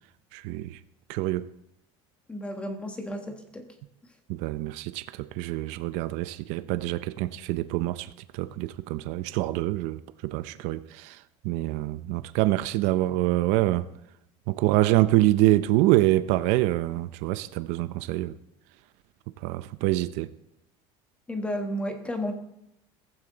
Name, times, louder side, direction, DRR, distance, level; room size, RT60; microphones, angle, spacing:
voice 1, 0.3-0.8 1.1-1.5 4.3-13.9 14.5-18.4 19.4-20.3, right 16 dB, 65° right, 0.5 m, -26 dB
voice 2, 2.3-3.7 21.3-22.3, equal, 10° left, 1.4 m, -32 dB
15.5 x 15.0 x 3.9 m
cardioid pair, 170°, 13 cm